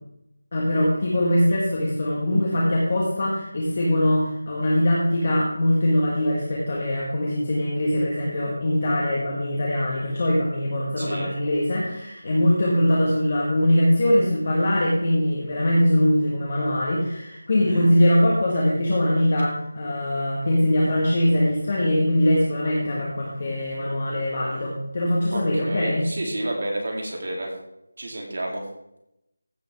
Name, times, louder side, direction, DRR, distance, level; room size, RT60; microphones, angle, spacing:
voice 1, 0.5-26.1, left 1 dB, 30° left, -4 dB, 1.6 m, -22 dB
voice 2, 11.0-11.3 17.6-17.9 25.3-27.5 28.0-28.6, right 1 dB, 45° right, 1 dB, 2.4 m, -30 dB
15.0 x 5.4 x 4.7 m, 0.84 s
figure-of-eight pair, 180°, 0 cm